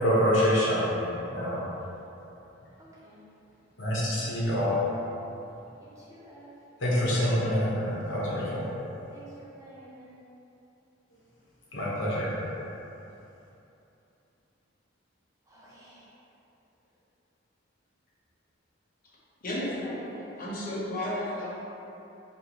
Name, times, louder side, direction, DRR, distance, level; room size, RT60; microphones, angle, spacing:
voice 1, 0.0-1.6 3.8-4.8 6.8-8.6 11.7-12.4, equal, 70° left, -8 dB, 1.1 m, -26 dB
voice 2, 2.8-3.2 4.0-4.4 6.1-6.5 9.1-10.2 15.5-16.0 19.8-20.4, right 1 dB, 15° right, -7 dB, 0.6 m, -49 dB
voice 3, 19.4-20.0 20.4-21.6, left 1 dB, 50° left, -7 dB, 0.9 m, -32 dB
4.4 x 2.6 x 3.0 m, 2.9 s
head